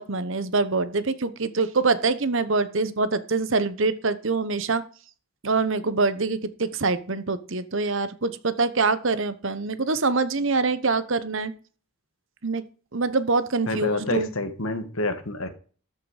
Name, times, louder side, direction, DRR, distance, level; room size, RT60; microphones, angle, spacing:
voice 1, 0.0-4.8 5.4-11.5 12.4-12.6 12.9-14.3, right 3 dB, 60° right, 0.9 m, -24 dB
voice 2, 13.7-15.5, left 2 dB, 65° left, 1.5 m, -28 dB
13.5 x 5.9 x 5.0 m
head